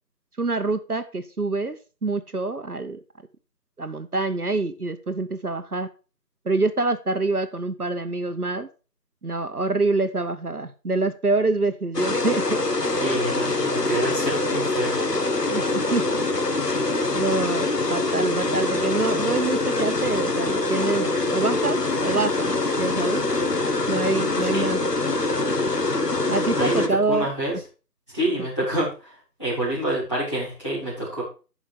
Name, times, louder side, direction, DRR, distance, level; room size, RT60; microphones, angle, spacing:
voice 1, 0.4-3.0 3.8-5.9 6.4-8.7 9.2-12.6 15.5-16.1 17.1-22.5 22.8-23.3 23.9-24.8 26.3-27.3 28.4-28.5, right 3 dB, 65° right, 9 dB, 0.9 m, -26 dB
sound 1, 11.9-26.9, left 2 dB, 75° left, 1.3 m, -24 dB
voice 2, 13.0-14.9 24.4-24.7 26.6-27.6 28.1-31.2, right 1 dB, 20° left, -10 dB, 4.1 m, -27 dB
11.5 x 5.1 x 4.8 m, 0.33 s
figure-of-eight pair, 180°, 49 cm